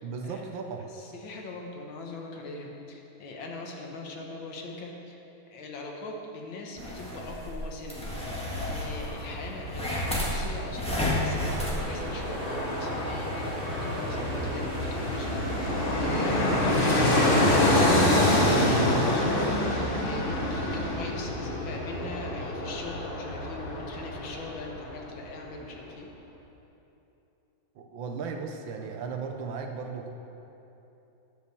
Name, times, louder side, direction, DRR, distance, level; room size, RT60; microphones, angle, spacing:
voice 1, 0.0-0.9 27.8-30.1, right 5 dB, 75° right, 4 dB, 1.4 m, -36 dB
voice 2, 0.8-5.2 5.5-8.2 8.6-26.1, left 2 dB, 70° left, 0 dB, 1.8 m, -41 dB
sound 1, 6.8-11.8, left 1 dB, 5° left, 1.2 m, -32 dB
Fixed-wing aircraft airplane, 8.0-24.9 25.2-25.3, left 1 dB, 40° left, 0.9 m, -27 dB
sound 2, 10.9-17.0, right 2 dB, 50° right, 1.2 m, -39 dB
11.0 x 5.1 x 6.8 m, 3.0 s
omnidirectional pair, 2.3 m